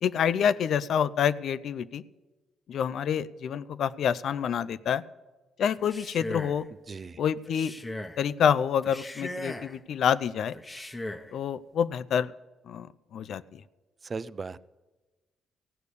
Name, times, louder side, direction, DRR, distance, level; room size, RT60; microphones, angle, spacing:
voice 1, 0.0-2.0 2.7-5.0 5.6-6.7 7.2-7.7 8.2-10.6 11.3-12.3 12.7-12.9 13.1-13.6, left 8 dB, 65° left, 16 dB, 0.5 m, -27 dB
Male speech man speaking, 5.7-6.6 7.4-8.2 8.8-9.8 10.5-11.3, left 1 dB, 15° left, 1.0 m, -38 dB
voice 2, 6.9-7.2 14.0-14.6, right 4 dB, 35° right, 17 dB, 0.4 m, -37 dB
16.0 x 6.8 x 8.3 m, 1.2 s
cardioid pair, 90°, 0 cm